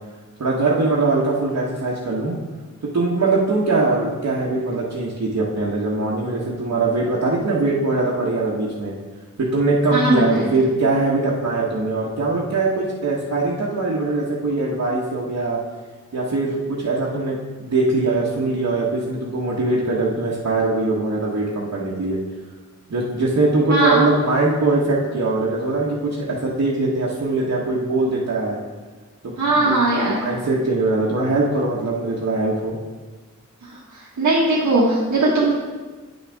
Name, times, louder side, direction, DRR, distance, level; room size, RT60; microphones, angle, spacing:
voice 1, 0.4-2.3 2.8-8.9 9.4-15.6 16.1-17.3 17.6-22.2 22.9-28.6 29.2-29.7 30.2-32.7, right 3 dB, 70° right, -6 dB, 1.3 m, -21 dB
voice 2, 9.9-10.2 23.7-24.0 29.4-30.2 34.2-35.6, right 2 dB, 85° right, -6 dB, 1.5 m, -18 dB
9.2 x 6.4 x 3.5 m, 1.3 s
wide cardioid pair, 80°, 30 cm